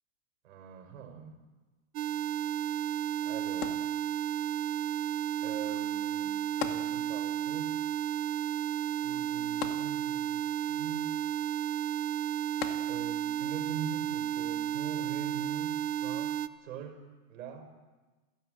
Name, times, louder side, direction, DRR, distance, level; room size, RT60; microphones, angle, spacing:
voice 1, 0.4-1.4 2.7-3.0 3.2-3.9 5.4-7.8 9.0-11.1 12.9-17.0 17.3-17.8, right 7 dB, 60° right, 6 dB, 5.4 m, -44 dB
sound 1, 1.9-16.5, right 11 dB, 90° right, 1.3 m, -33 dB
sound 2, 3.6-4.5 6.6-7.5 7.8-7.9 9.6-10.4 12.6-13.3 14.0-14.1, left 10 dB, 85° left, 2.3 m, -40 dB
29.5 x 17.0 x 8.0 m, 1.3 s
supercardioid pair, 175°, 44 cm